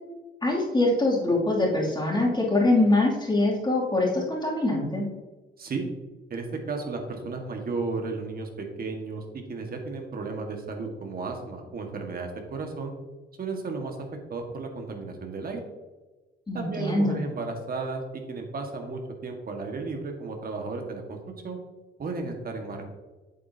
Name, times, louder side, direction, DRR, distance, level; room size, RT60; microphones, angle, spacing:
voice 1, 0.4-5.0 16.5-17.2, left 2 dB, 20° left, -4 dB, 2.7 m, -23 dB
voice 2, 5.6-5.9 6.3-9.2 9.5-12.9 13.4-15.6 16.5-21.2 21.4-21.6 22.0-22.8, right 3 dB, 50° right, 3 dB, 1.7 m, -34 dB
8.4 x 7.6 x 2.8 m, 1.2 s
cardioid pair, 90°, 20 cm